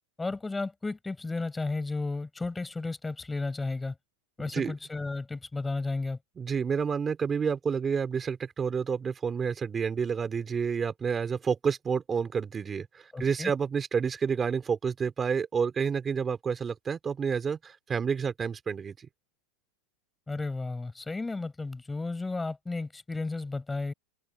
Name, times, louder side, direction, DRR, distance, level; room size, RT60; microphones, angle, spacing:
voice 1, 0.2-4.0 4.4-6.2 13.1-13.5 20.3-23.9, left 3 dB, 10° left, 4.7 m, -33 dB
voice 2, 4.4-4.7 6.4-19.1, right 6 dB, 20° right, 2.8 m, -29 dB
open air
supercardioid pair, 140°, 0 cm